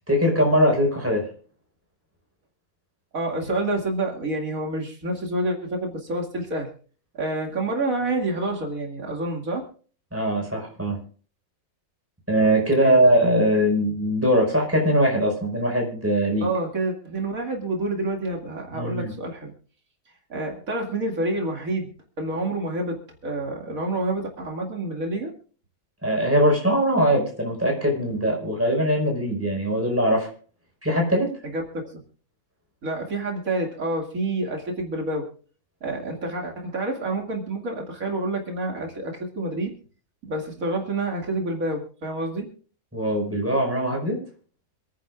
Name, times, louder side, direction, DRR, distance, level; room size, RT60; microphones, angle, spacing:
voice 1, 0.1-1.3 10.1-11.0 12.3-16.5 18.7-19.1 26.0-30.3 30.8-31.3 42.9-44.2, equal, 10° right, 0 dB, 5.2 m, -21 dB
voice 2, 3.1-6.7 7.1-9.7 12.8-13.0 16.4-19.5 20.3-25.3 31.4-32.0 32.8-35.3 35.8-39.7 40.3-42.5, right 2 dB, 85° right, 1 dB, 2.7 m, -28 dB
27.0 x 10.0 x 2.4 m, 0.41 s
omnidirectional pair, 1.4 m